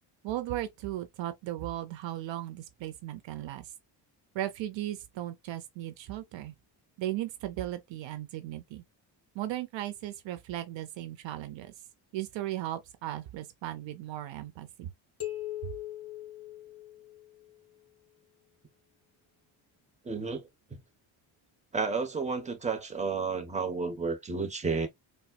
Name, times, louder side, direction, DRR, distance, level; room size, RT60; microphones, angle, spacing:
voice 1, 0.2-3.7 4.3-6.5 7.0-8.8 9.3-11.7 12.1-14.9 15.6-15.7, right 13 dB, 70° right, 0.6 m, -36 dB
sound 1, 15.2-17.6, left 14 dB, 30° left, 1.4 m, -40 dB
voice 2, 20.0-20.4 21.7-24.9, right 4 dB, 15° right, 0.9 m, -31 dB
4.1 x 2.3 x 2.2 m
cardioid pair, 80°, 47 cm